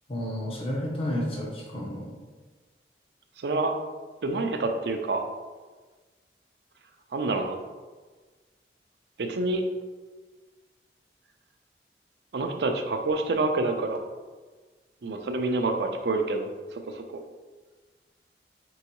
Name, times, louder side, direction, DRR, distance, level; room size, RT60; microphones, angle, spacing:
voice 1, 0.1-2.2, left 1 dB, 30° left, -2 dB, 0.6 m, -31 dB
voice 2, 3.4-3.7 4.2-5.3 7.1-7.6 9.2-9.6 12.3-14.0 15.0-17.2, right 2 dB, 70° right, 5 dB, 0.4 m, -27 dB
4.6 x 3.0 x 2.9 m, 1.3 s
head